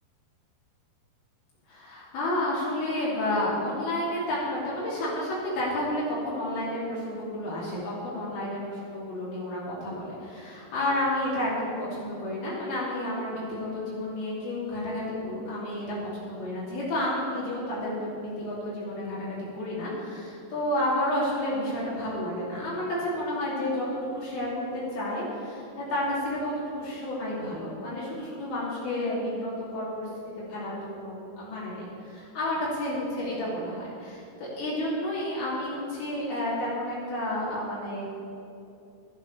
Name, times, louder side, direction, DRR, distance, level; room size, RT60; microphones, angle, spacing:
voice 1, 1.7-23.9 24.1-30.1 30.4-38.0, left 1 dB, 80° left, -7 dB, 4.8 m, -31 dB
12.5 x 11.5 x 6.8 m, 2.7 s
omnidirectional pair, 4.3 m